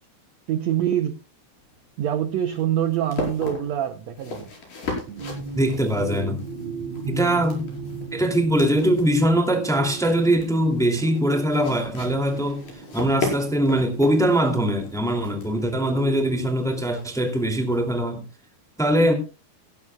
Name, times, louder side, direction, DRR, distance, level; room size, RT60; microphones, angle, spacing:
voice 1, 0.5-1.2 2.0-4.5 7.0-7.5, right 10 dB, 80° right, 1.6 m, -25 dB
sound 1, 1.6-17.9, left 3 dB, 60° left, 6.6 m, -37 dB
sound 2, 5.1-16.8, right 4 dB, 55° right, 2.3 m, -37 dB
voice 2, 5.5-6.4 7.1-7.6 8.1-12.6 12.9-18.2 18.8-19.1, right 1 dB, ahead, 1.9 m, -22 dB
17.0 x 15.5 x 2.4 m
omnidirectional pair, 4.2 m